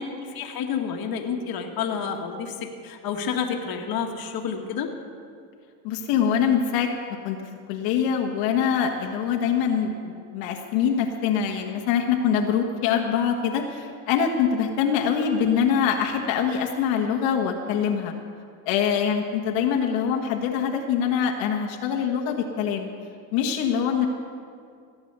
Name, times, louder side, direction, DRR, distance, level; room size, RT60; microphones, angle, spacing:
voice 1, 0.0-2.5 2.8-4.9, left 6 dB, 50° left, 2 dB, 1.7 m, -29 dB
voice 2, 5.8-6.9 7.2-7.4 7.7-18.1 18.6-22.9 23.3-24.1, left 7 dB, 80° left, 2 dB, 1.5 m, -24 dB
16.5 x 8.9 x 6.7 m, 2.3 s
supercardioid pair, 105°, 45 cm